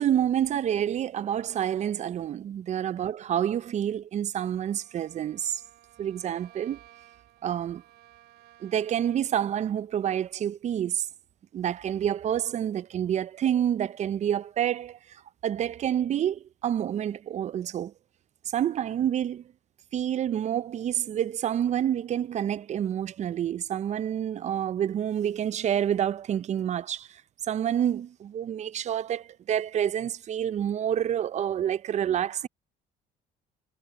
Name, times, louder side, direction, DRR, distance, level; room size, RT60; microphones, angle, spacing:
voice 1, 0.0-5.6 6.0-6.8 7.4-7.8 8.6-11.1 11.5-17.9 18.5-19.4 19.9-27.2 27.5-32.5, right 10 dB, 45° right, 0.5 m, -28 dB
Bowed string instrument, 4.5-9.5, right 14 dB, 75° right, 3.0 m, -56 dB
cardioid pair, 110°, 17 cm